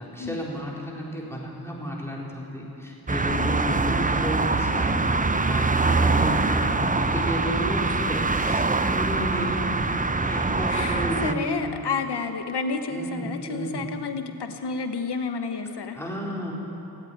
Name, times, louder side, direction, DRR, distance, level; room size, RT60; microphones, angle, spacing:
voice 1, 0.0-5.0 5.4-11.6 12.9-13.9 15.9-16.5, equal, 5° left, -4 dB, 4.1 m, -32 dB
sound 1, 3.1-11.3, right 3 dB, 20° right, 0.7 m, -24 dB
voice 2, 10.7-16.0, left 4 dB, 75° left, 7 dB, 1.1 m, -30 dB
17.5 x 8.4 x 9.4 m, 3.0 s
cardioid pair, 40°, 40 cm